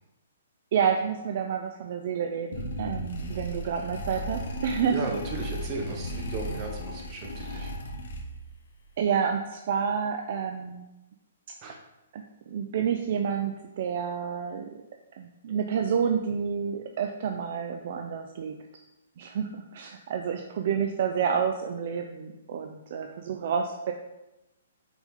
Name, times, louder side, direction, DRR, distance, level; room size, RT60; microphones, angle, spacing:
voice 1, 0.7-5.0 7.5-7.6 9.0-10.9 12.1-14.7 15.2-18.6 19.2-23.9, right 7 dB, 50° right, 4 dB, 0.5 m, -29 dB
sound 1, 2.5-8.6, equal, 70° left, 1.3 m, -36 dB
voice 2, 4.9-7.7 11.6-11.8, right 3 dB, 30° right, 1 dB, 1.2 m, -35 dB
6.2 x 5.1 x 3.7 m, 0.94 s
hypercardioid pair, 155°, 0 cm